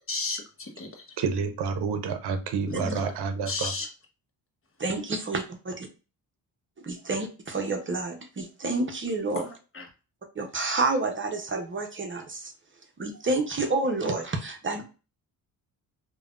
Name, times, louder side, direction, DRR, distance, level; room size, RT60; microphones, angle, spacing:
voice 1, 0.1-1.0 2.7-3.1 3.5-3.9 9.4-9.9, left 3 dB, 30° left, 3 dB, 1.0 m, -34 dB
voice 2, 1.2-3.7, right 5 dB, 70° right, 8 dB, 0.7 m, -29 dB
voice 3, 4.8-5.9 6.8-9.4 10.3-12.5 13.0-14.8, right 3 dB, 30° right, 4 dB, 0.7 m, -29 dB
3.2 x 2.3 x 2.4 m, 0.33 s
cardioid pair, 75°, 41 cm